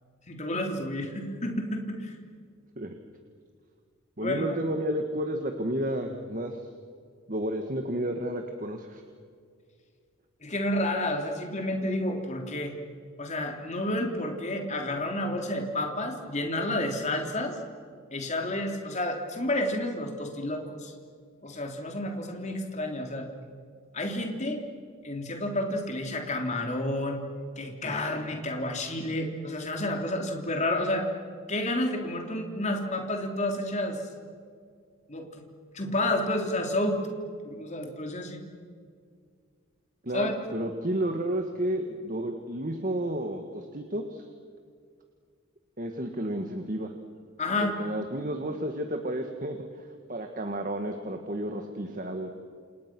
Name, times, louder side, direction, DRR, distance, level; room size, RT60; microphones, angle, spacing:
voice 1, 0.3-2.1 4.2-4.6 10.4-12.7 13.2-17.6 18.1-20.9 21.4-23.3 23.9-24.6 25.0-27.2 27.6-31.1 31.5-34.0 35.1-35.4 35.7-37.0 37.4-38.4 40.1-40.4 47.4-47.8, left 1 dB, 35° left, 3 dB, 3.2 m, -30 dB
voice 2, 4.2-6.6 7.3-9.0 27.8-27.9 40.0-44.3 45.8-46.9 47.6-49.7 50.1-52.3, right 1 dB, 40° right, 5 dB, 1.7 m, -31 dB
29.0 x 28.5 x 6.2 m, 2.1 s
head